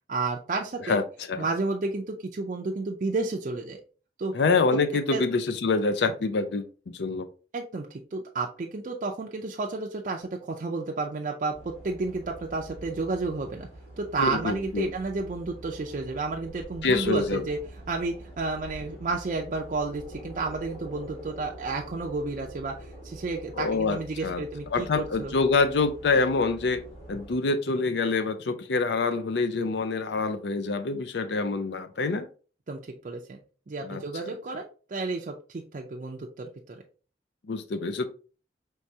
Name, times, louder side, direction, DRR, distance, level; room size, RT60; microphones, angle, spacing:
voice 1, 0.1-1.0 1.4-3.8 4.2-4.3 5.1-5.3 7.5-13.7 14.0-17.6 17.9-25.3 32.7-33.4 33.7-36.8, right 3 dB, 45° right, 0 dB, 0.4 m, -31 dB
voice 2, 4.3-7.3 14.2-14.9 16.8-17.5 23.6-24.4 24.7-26.8 27.1-32.3 33.8-34.0 37.5-38.1, left 3 dB, 75° left, 11 dB, 0.5 m, -26 dB
sound 1, 11.5-27.4, right 1 dB, 40° left, 1.9 m, -45 dB
4.6 x 3.2 x 2.7 m, 0.38 s
head